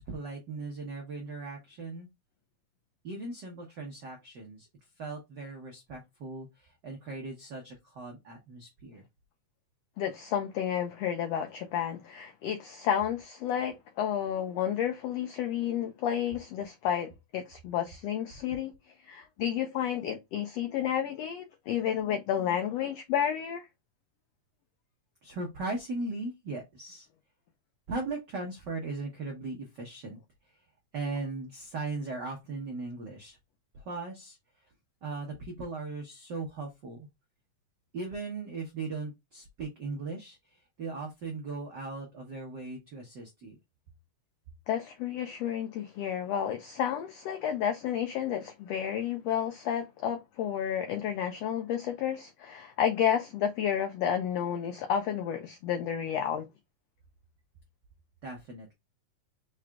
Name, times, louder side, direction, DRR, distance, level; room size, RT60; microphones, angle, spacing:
voice 1, 0.0-2.1 3.0-4.7 5.0-9.0 25.2-27.1 27.9-30.2 30.5-30.6 30.9-33.4 33.7-34.4 35.0-37.1 37.9-43.6 58.2-58.7, right 3 dB, 80° right, 0.9 m, -38 dB
voice 2, 10.0-18.7 19.1-23.6 44.7-56.5, left 9 dB, 75° left, 1.5 m, -31 dB
4.8 x 3.8 x 2.2 m
omnidirectional pair, 3.6 m